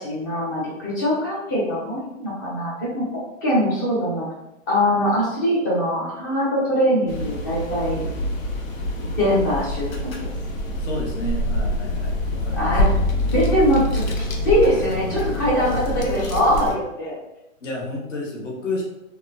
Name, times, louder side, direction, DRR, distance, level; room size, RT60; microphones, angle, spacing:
voice 1, 0.0-3.0 3.4-4.3 4.7-8.0 9.0-10.3 12.6-13.0 13.3-14.0 14.4-17.2, equal, 15° left, -6 dB, 0.4 m, -22 dB
sound 1, 7.1-16.8, left 1 dB, 85° left, 0.7 m, -25 dB
voice 2, 10.8-12.9 17.6-18.8, left 2 dB, 65° left, -3 dB, 1.1 m, -31 dB
2.9 x 2.1 x 2.4 m, 0.89 s
hypercardioid pair, 145°, 40 cm